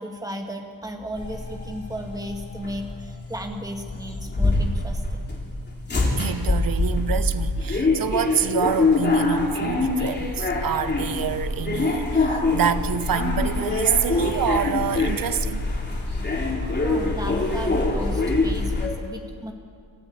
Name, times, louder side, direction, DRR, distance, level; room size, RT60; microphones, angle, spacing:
voice 1, 0.0-5.2 16.8-19.5, equal, 10° right, 2.0 m, -34 dB
sound 1, 1.2-18.9, left 2 dB, 25° left, 3.4 m, -24 dB
voice 2, 6.2-15.7, right 8 dB, 60° right, 1.0 m, -27 dB
25.5 x 14.0 x 8.7 m
wide cardioid pair, 175°, 39 cm